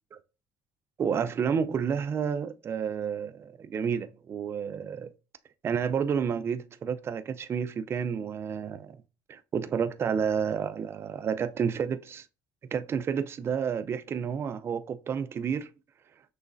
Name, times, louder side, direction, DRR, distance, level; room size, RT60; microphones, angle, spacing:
voice 1, 1.0-5.1 5.6-9.0 9.3-12.3 12.7-15.7, right 7 dB, 30° right, 0.4 m, -30 dB
6.0 x 3.2 x 2.5 m
cardioid pair, 125°, 8 cm